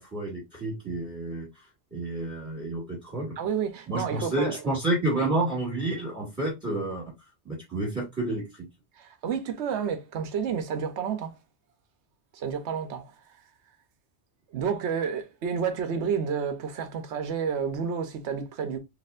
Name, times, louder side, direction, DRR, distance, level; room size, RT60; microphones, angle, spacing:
voice 1, 0.0-1.5 1.9-3.4 3.9-7.1 7.5-8.7, right 2 dB, 15° right, 2.0 m, -30 dB
voice 2, 3.4-4.6 9.0-11.4 12.3-13.2 14.5-18.8, right 7 dB, 85° right, 1.0 m, -30 dB
4.2 x 3.0 x 2.4 m
omnidirectional pair, 1.1 m